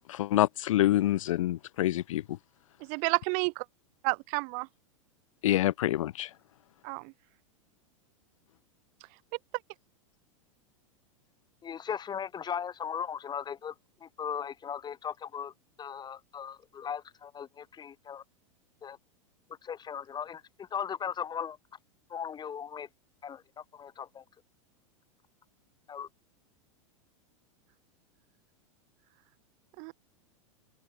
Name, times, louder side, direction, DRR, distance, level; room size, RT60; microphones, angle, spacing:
voice 1, 0.1-2.4 5.4-6.3, left 14 dB, 70° left, 0.6 m, -26 dB
voice 2, 2.9-3.6 4.0-4.7 6.8-7.1 29.8-29.9, right 40 dB or more, 50° right, 2.1 m, -30 dB
voice 3, 11.6-13.7 14.0-15.5 15.8-18.2 18.8-19.0 19.6-21.6 22.1-22.9 23.2-24.2 25.9-26.1, left 8 dB, 25° left, 6.3 m, -38 dB
open air
hypercardioid pair, 105°, 17 cm